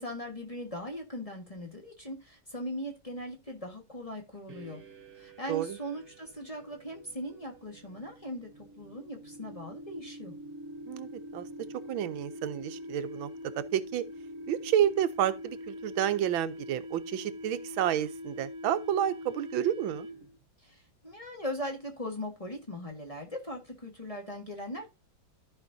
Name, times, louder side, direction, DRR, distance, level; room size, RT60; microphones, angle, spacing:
voice 1, 0.0-4.8 5.1-10.3 20.6-24.9, equal, 20° left, 1.4 m, -39 dB
sound 1, 4.5-20.4, left 1 dB, 40° right, 1.3 m, -44 dB
voice 2, 10.9-11.5 11.9-13.3 13.6-14.0 14.5-20.1, right 10 dB, 85° right, 1.5 m, -30 dB
14.0 x 5.2 x 2.7 m
omnidirectional pair, 2.1 m